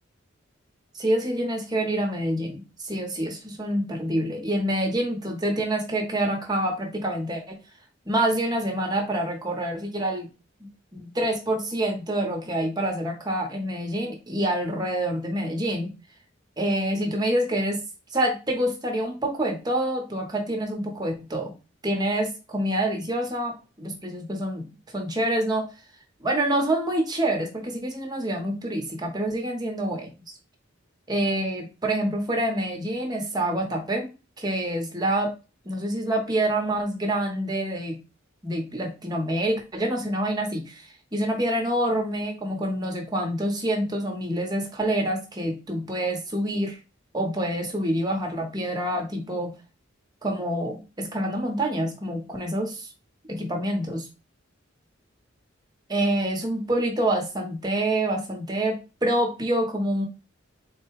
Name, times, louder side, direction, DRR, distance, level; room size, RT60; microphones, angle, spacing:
voice 1, 0.9-7.6 8.1-10.3 10.6-10.7 11.0-15.9 16.6-17.8 18.1-21.5 21.8-25.7 26.2-30.1 31.1-34.1 34.4-35.3 35.6-38.0 38.4-46.8 47.1-49.5 50.2-52.9 53.3-54.1 55.9-60.1, right 1 dB, 20° right, 2 dB, 1.0 m, -27 dB
3.9 x 2.3 x 4.6 m, 0.29 s
head